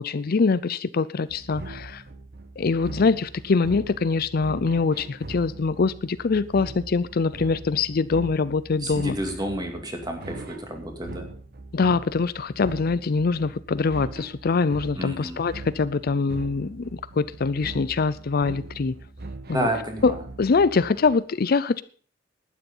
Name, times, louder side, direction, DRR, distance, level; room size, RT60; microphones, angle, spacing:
voice 1, 0.0-2.0 2.6-9.2 11.7-18.9 19.5-19.7 20.0-21.8, left 4 dB, 50° left, 16 dB, 0.5 m, -24 dB
sound 1, 1.3-21.1, right 2 dB, 55° right, 1.1 m, -41 dB
voice 2, 8.8-11.3 15.0-15.4 19.5-20.0, right 1 dB, 20° right, 4 dB, 2.5 m, -30 dB
12.0 x 9.6 x 5.4 m, 0.42 s
head